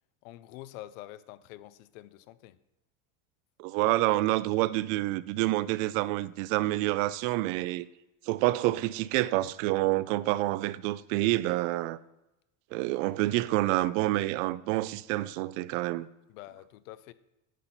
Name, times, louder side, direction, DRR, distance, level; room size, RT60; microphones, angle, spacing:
voice 1, 0.2-2.6 16.3-17.1, left 15 dB, 85° left, 0.6 m, -46 dB
voice 2, 3.6-7.9 8.3-12.0 12.7-16.1, right 17 dB, 75° right, 0.5 m, -28 dB
10.0 x 4.0 x 5.8 m
cardioid pair, 140°, 38 cm